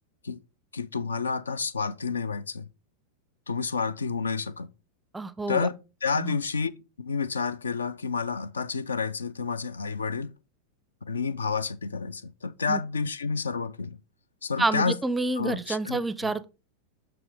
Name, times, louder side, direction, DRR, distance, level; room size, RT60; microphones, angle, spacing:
voice 1, 0.7-2.7 3.5-4.7 5.5-5.8 6.0-6.7 7.0-10.3 11.0-14.0 14.4-15.0 15.4-16.3, left 5 dB, 75° left, 0.3 m, -30 dB
voice 2, 5.1-5.7 6.2-6.4 12.7-12.8 14.6-16.5, right 2 dB, 10° right, 0.4 m, -28 dB
6.1 x 6.1 x 3.3 m
figure-of-eight pair, 90°, 0 cm